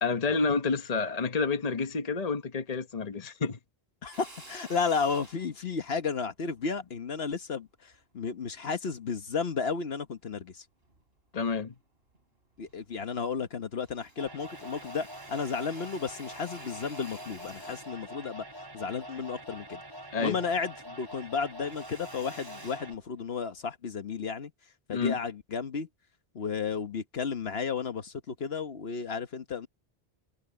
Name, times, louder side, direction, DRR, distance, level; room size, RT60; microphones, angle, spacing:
voice 1, 0.0-3.6 11.3-11.7 20.1-20.4 24.9-25.2, left 4 dB, 40° left, 1.2 m, -29 dB
voice 2, 4.0-10.6 12.6-18.4 18.7-19.8 20.2-24.5 24.9-25.9 26.3-29.7, left 5 dB, 70° left, 1.4 m, -33 dB
Drill, 4.1-8.7 9.2-10.4 10.8-11.8 12.1-12.2 12.5-13.5 13.8-20.4 20.7-23.6, right 2 dB, 70° right, 4.1 m, -53 dB
sound 1, 14.2-22.9, right 1 dB, 25° right, 6.0 m, -45 dB
omnidirectional pair, 1.1 m